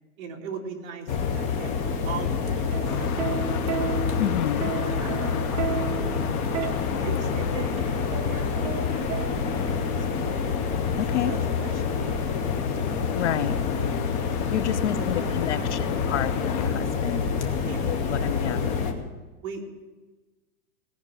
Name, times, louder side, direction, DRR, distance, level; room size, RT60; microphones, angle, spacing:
voice 1, 0.2-1.7 2.0-3.6 4.2-4.5 4.8-10.4 11.1-12.5 13.3-13.6 14.7-15.8 17.3-18.9 19.4-19.7, right 4 dB, 35° right, 0 dB, 2.0 m, -41 dB
sound 1, 1.1-18.9, left 5 dB, 15° left, 0.7 m, -27 dB
Plucked string instrument, 2.7-9.8 10.8-11.1, right 8 dB, 55° right, 1.0 m, -33 dB
sound 2, 2.8-16.7, left 8 dB, 80° left, 1.4 m, -37 dB
voice 2, 4.2-4.7 11.0-11.3 13.2-13.6 14.5-17.3 17.9-18.8, left 12 dB, 55° left, 15 dB, 0.5 m, -29 dB
17.5 x 5.9 x 8.6 m, 1.3 s
supercardioid pair, 165°, 43 cm